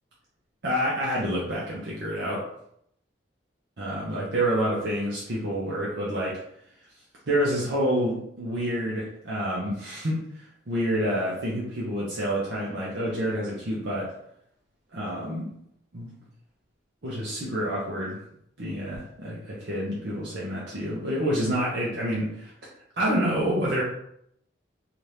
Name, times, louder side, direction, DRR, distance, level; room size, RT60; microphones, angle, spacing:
voice 1, 0.6-2.4 3.8-6.4 7.3-14.1 14.9-15.5 15.9-16.1 17.0-18.2 18.6-22.5 23.0-23.8, equal, 60° right, -6 dB, 0.7 m, -28 dB
2.8 x 2.5 x 3.3 m, 0.72 s
head